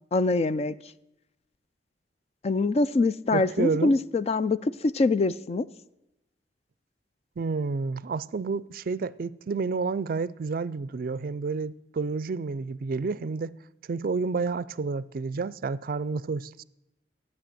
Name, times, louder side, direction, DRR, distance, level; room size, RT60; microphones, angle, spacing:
voice 1, 0.1-0.7 2.4-5.7, left 3 dB, 35° left, 0.4 m, -24 dB
voice 2, 3.3-4.0 7.4-13.6 13.9-16.6, right 4 dB, 55° right, 0.4 m, -30 dB
13.0 x 9.4 x 7.7 m
head